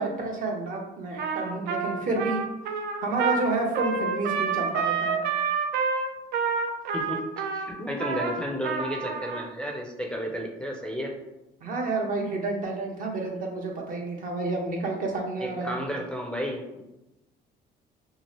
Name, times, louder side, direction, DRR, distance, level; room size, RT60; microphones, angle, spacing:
voice 1, 0.0-2.4 3.0-5.2 11.6-15.7, right 2 dB, 55° right, 1 dB, 0.7 m, -30 dB
Trumpet, 1.2-9.4, right 5 dB, 75° right, 0.4 m, -28 dB
voice 2, 6.9-11.1 15.4-16.8, equal, 5° left, -1 dB, 0.4 m, -32 dB
2.9 x 2.4 x 2.9 m, 0.94 s
cardioid pair, 110°, 17 cm